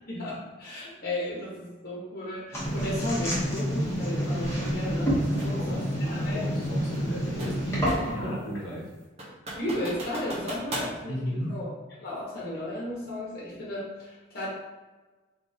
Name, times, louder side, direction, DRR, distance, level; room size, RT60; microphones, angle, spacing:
voice 1, 0.1-5.8 6.1-6.5 8.1-8.4 9.6-11.1 11.5-11.7 12.0-14.5, left 1 dB, 50° left, -7 dB, 1.1 m, -34 dB
sound 1, 2.5-8.3, equal, 15° left, 0.9 m, -28 dB
voice 2, 5.3-8.9 11.1-11.5, equal, 75° left, -5 dB, 1.3 m, -36 dB
sound 2, 5.4-5.6 6.9-8.2 8.6-8.7 9.2-11.0, right 1 dB, 30° right, 0.9 m, -37 dB
3.0 x 2.7 x 3.5 m, 1.2 s
head